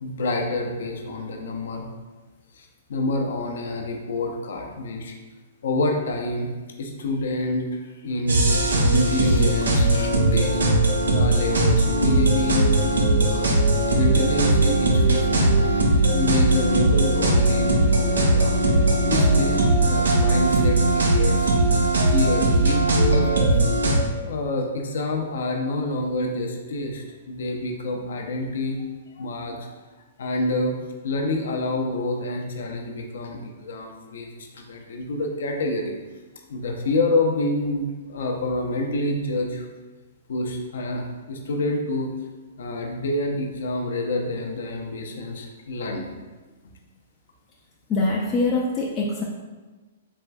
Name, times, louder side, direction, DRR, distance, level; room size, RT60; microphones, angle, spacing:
voice 1, 0.0-1.9 2.5-5.1 5.6-6.5 6.8-10.6 11.1-13.6 13.9-21.5 22.0-23.7 24.2-28.8 29.1-29.7 30.2-30.8 31.0-36.0 36.5-39.7 40.3-42.1 42.6-46.1, left 2 dB, 70° left, 1 dB, 0.6 m, -27 dB
sound 1, 8.3-24.0, right 2 dB, 80° right, 0.6 m, -19 dB
voice 2, 47.9-49.2, left 2 dB, 25° left, -4 dB, 0.4 m, -23 dB
4.3 x 3.2 x 2.3 m, 1.3 s
hypercardioid pair, 120°, 0 cm